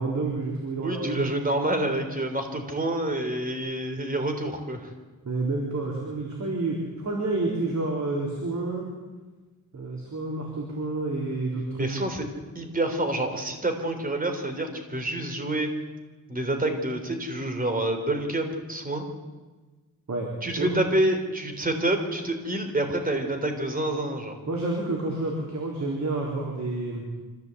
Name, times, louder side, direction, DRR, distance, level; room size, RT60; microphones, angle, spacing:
voice 1, 0.0-1.2 5.3-8.9 9.7-11.9 20.1-20.8 24.5-27.0, right 2 dB, 50° right, -1 dB, 4.1 m, -29 dB
voice 2, 0.8-4.9 11.8-12.3 12.6-15.7 16.3-19.0 20.4-24.4, right 1 dB, 25° right, 5 dB, 3.6 m, -27 dB
25.0 x 15.5 x 8.4 m, 1.3 s
wide cardioid pair, 140°, 35 cm